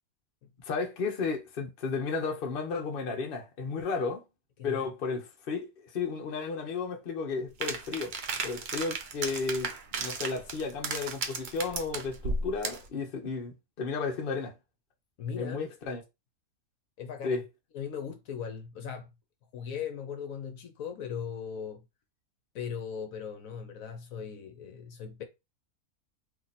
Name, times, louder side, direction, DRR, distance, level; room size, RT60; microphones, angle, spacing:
voice 1, 0.6-4.2 4.6-8.1 8.4-9.7 10.0-14.5 15.4-16.0 17.2-17.4, left 4 dB, 45° left, 0.9 m, -33 dB
sound 1, 7.6-12.9, right 4 dB, 60° right, 0.5 m, -35 dB
voice 2, 15.2-15.6 17.0-17.4 17.7-19.1 19.5-21.8 22.5-25.2, left 7 dB, 70° left, 1.1 m, -38 dB
2.8 x 2.6 x 4.0 m
omnidirectional pair, 1.5 m